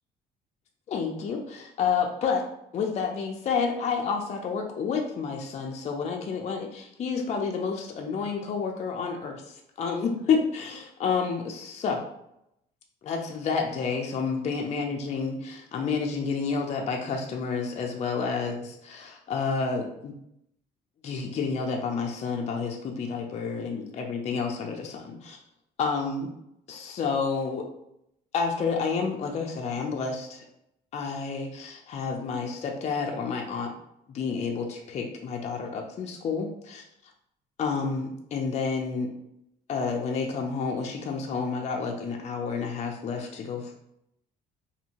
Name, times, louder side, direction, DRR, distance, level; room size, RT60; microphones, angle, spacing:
voice 1, 0.9-2.4 2.7-12.0 13.0-20.1 21.0-25.4 25.8-26.3 26.7-27.7 28.3-30.4 30.9-33.7 34.1-36.8 37.6-39.1 39.7-43.8, left 5 dB, 40° left, 1 dB, 0.5 m, -30 dB
2.7 x 2.6 x 2.9 m, 0.79 s
cardioid pair, 110°, 17 cm